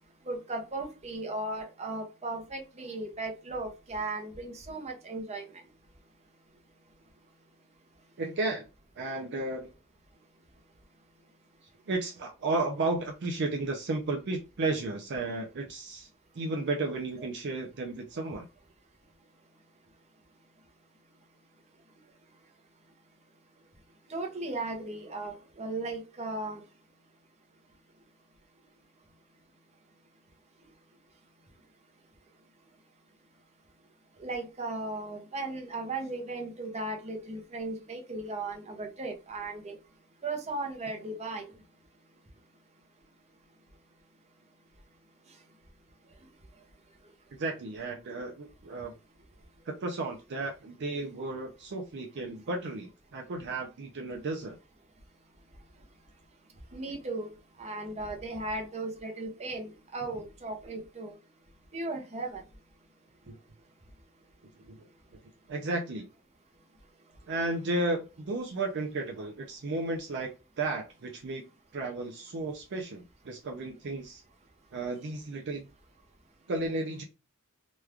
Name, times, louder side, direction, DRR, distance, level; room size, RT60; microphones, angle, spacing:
voice 1, 0.3-5.5 17.2-17.3 24.1-26.6 34.2-39.8 40.2-41.5 56.7-57.3 57.6-61.1 61.7-62.4, right 2 dB, 30° right, 2 dB, 0.8 m, -36 dB
voice 2, 8.2-8.7 9.0-9.7 11.9-16.1 16.3-18.5 47.4-48.9 49.7-54.6 63.3-63.4 64.6-64.9 65.5-66.1 67.3-70.3 70.6-71.4 71.7-74.2 74.7-75.7 76.5-77.0, right 2 dB, 55° right, 1 dB, 0.5 m, -33 dB
3.0 x 2.3 x 3.4 m, 0.30 s
head